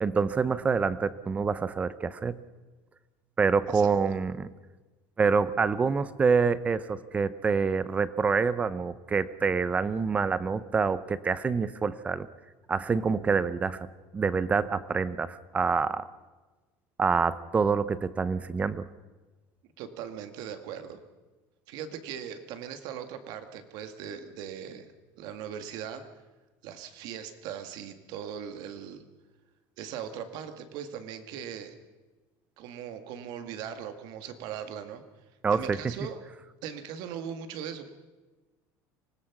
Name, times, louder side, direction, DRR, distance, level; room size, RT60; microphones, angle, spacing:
voice 1, 0.0-2.4 3.4-4.5 5.2-12.3 12.7-13.9 14.1-16.1 17.0-18.9 35.4-35.8, right 5 dB, 15° right, 16 dB, 0.6 m, -26 dB
voice 2, 19.8-21.0 21.7-24.9 25.2-26.0 26.6-29.0 29.8-31.8 32.6-35.0 35.5-36.2 36.6-37.9, right 8 dB, 60° right, 8 dB, 1.9 m, -39 dB
25.5 x 19.5 x 6.0 m, 1.2 s
cardioid pair, 165°, 8 cm